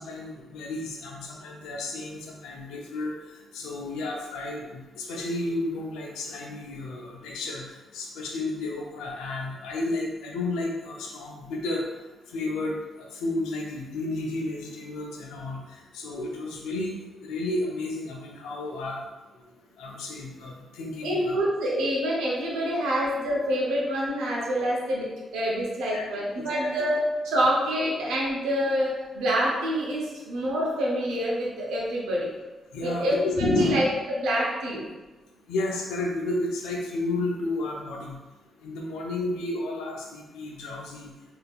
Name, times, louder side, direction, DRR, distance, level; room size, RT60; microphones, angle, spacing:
voice 1, 0.0-3.1 3.5-7.7 7.9-11.8 12.3-12.7 13.1-15.6 15.9-16.9 17.2-19.0 19.8-21.4 25.9-26.1 26.6-26.7 32.7-33.9 35.5-38.2 38.6-41.1, left 2 dB, 80° left, -1 dB, 0.5 m, -32 dB
voice 2, 21.0-25.1 25.3-32.3 32.8-34.8, equal, 75° right, -4 dB, 0.7 m, -26 dB
3.5 x 2.7 x 2.3 m, 1.2 s
hypercardioid pair, 45°, 0 cm